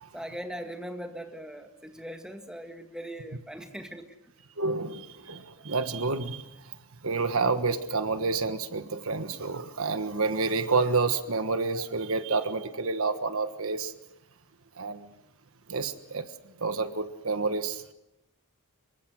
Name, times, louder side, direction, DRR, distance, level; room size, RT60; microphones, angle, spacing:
voice 1, 0.1-4.1, equal, 5° right, 4 dB, 1.9 m, -40 dB
voice 2, 4.6-6.5 7.0-13.9 14.8-15.1 15.7-16.3 16.6-17.9, right 4 dB, 70° right, 10 dB, 1.4 m, -29 dB
25.5 x 23.5 x 6.4 m, 0.90 s
head